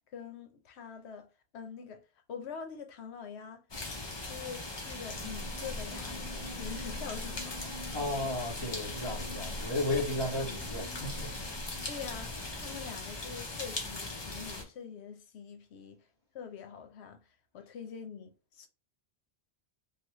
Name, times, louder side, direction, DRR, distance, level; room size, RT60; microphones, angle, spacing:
voice 1, 0.1-3.6 4.2-7.7 11.9-16.1 16.3-18.7, left 7 dB, 85° left, 0.9 m, -45 dB
sound 1, 3.7-14.6, left 2 dB, 30° left, 0.5 m, -40 dB
sound 2, 4.9-12.7, equal, 30° right, 0.9 m, -44 dB
voice 2, 7.6-11.3, left 2 dB, 50° left, 1.7 m, -34 dB
3.3 x 2.3 x 2.9 m
omnidirectional pair, 1.1 m